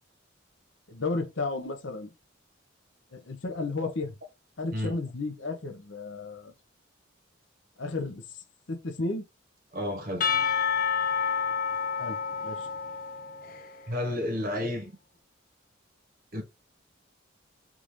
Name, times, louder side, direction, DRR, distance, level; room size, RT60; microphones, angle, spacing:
voice 1, 0.9-2.1 3.1-4.2 4.6-6.5 7.8-8.2 8.7-9.2 12.0-12.2 12.4-12.7, left 3 dB, 65° left, 0.8 m, -33 dB
voice 2, 9.7-10.3 13.9-14.9 16.3-16.4, left 1 dB, 45° right, 1.1 m, -31 dB
Percussion / Church bell, 10.2-13.9, left 6 dB, 45° left, 0.5 m, -29 dB
3.7 x 2.6 x 3.0 m
head